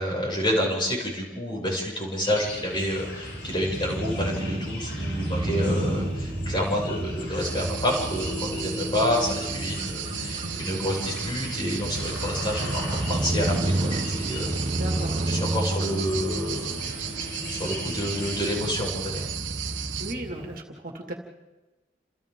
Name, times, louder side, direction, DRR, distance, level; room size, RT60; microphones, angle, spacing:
voice 1, 0.0-14.6 15.3-19.3, equal, 25° left, -3 dB, 6.9 m, -29 dB
sound 1, 2.2-18.6, left 2 dB, 80° left, 5.1 m, -39 dB
Crow / Motorcycle, 2.7-20.6, right 1 dB, 30° right, 0.8 m, -32 dB
sound 2, 7.4-20.1, right 8 dB, 80° right, 1.3 m, -35 dB
voice 2, 14.7-15.1 20.0-21.1, right 1 dB, 50° right, 2 dB, 2.2 m, -35 dB
30.0 x 27.5 x 3.8 m, 1.2 s
head